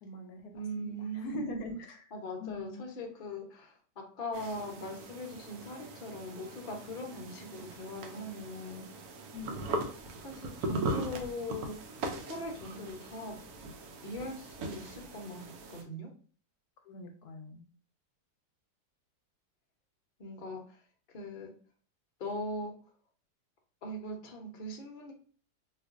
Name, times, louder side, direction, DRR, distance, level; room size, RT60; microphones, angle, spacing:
voice 1, 0.0-2.1 2.4-2.9 9.3-9.6 16.8-17.6, left 2 dB, 75° left, 4 dB, 1.1 m, -42 dB
voice 2, 0.5-1.6 2.1-8.9 10.2-11.9 12.2-13.4 14.0-16.1 20.2-20.8 21.1-21.5 22.2-22.7 23.8-25.1, equal, 50° left, 1 dB, 0.7 m, -40 dB
sound 1, 4.3-15.8, right 2 dB, 70° right, 1.0 m, -40 dB
4.3 x 2.4 x 2.4 m, 0.43 s
omnidirectional pair, 1.8 m